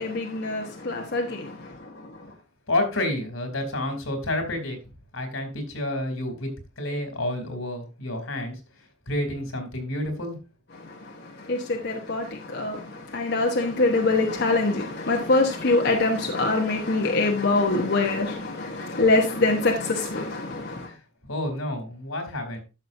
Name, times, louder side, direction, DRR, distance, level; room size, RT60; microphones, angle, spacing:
voice 1, 0.0-2.3 10.7-20.9, left 2 dB, 55° left, 1.1 m, -24 dB
voice 2, 2.7-4.8 5.1-6.5 6.8-8.6 9.1-10.4 20.9-21.0 21.3-22.6, left 1 dB, 90° left, 3.0 m, -29 dB
12.0 x 6.4 x 2.6 m
head